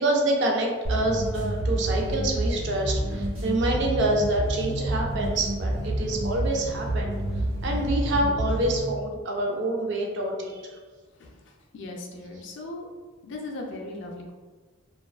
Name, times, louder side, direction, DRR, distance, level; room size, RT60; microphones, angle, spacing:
voice 1, 0.0-7.2 7.6-10.6, right 1 dB, 55° right, 0 dB, 0.4 m, -26 dB
sound 1, 0.8-8.9, right 1 dB, 70° right, 1.1 m, -29 dB
voice 2, 11.7-12.8 13.2-14.3, left 2 dB, 55° left, 0 dB, 0.4 m, -37 dB
2.4 x 2.2 x 2.3 m, 1.4 s
head